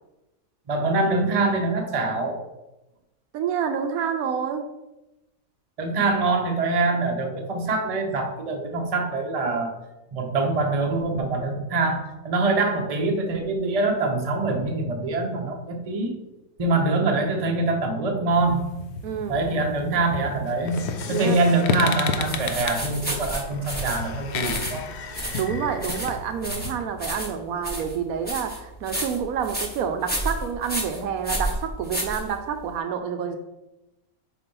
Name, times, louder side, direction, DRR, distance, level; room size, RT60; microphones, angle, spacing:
voice 1, 0.7-2.4 5.8-9.7 10.1-16.1 16.6-18.7 19.3-24.9, right 3 dB, 30° right, 2 dB, 0.7 m, -24 dB
voice 2, 3.3-4.6 19.0-19.4 21.1-21.4 25.4-33.4, right 7 dB, 80° right, 6 dB, 1.0 m, -28 dB
sound 1, 18.3-26.7, left 4 dB, 60° left, 0.8 m, -34 dB
sound 2, 20.5-26.1, left 7 dB, 85° left, 0.5 m, -34 dB
sound 3, 22.2-32.7, right 1 dB, 10° left, 0.9 m, -32 dB
4.6 x 4.2 x 5.3 m, 0.97 s
omnidirectional pair, 1.5 m